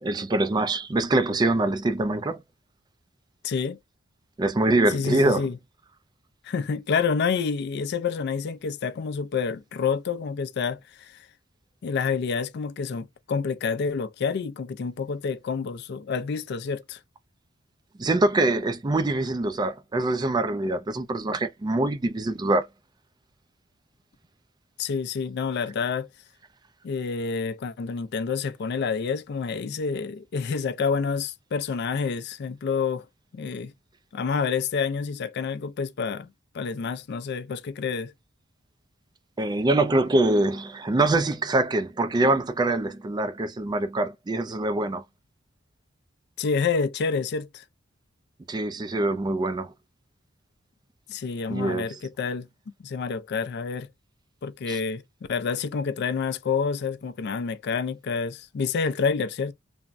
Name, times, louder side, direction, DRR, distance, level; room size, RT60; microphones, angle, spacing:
voice 1, 0.0-2.4 4.4-5.5 18.0-22.7 39.4-45.0 48.5-49.7 51.5-52.0 54.7-54.8, right 2 dB, 20° right, 0.3 m, -24 dB
voice 2, 3.4-3.8 4.9-5.6 6.4-11.3 11.8-17.0 24.8-26.1 26.8-33.1 33.3-33.7 34.1-36.3 36.5-38.1 46.4-47.6 51.1-52.5 52.8-53.9 54.4-55.0 55.3-59.5, left 5 dB, 55° left, 0.4 m, -28 dB
3.4 x 2.0 x 2.5 m
head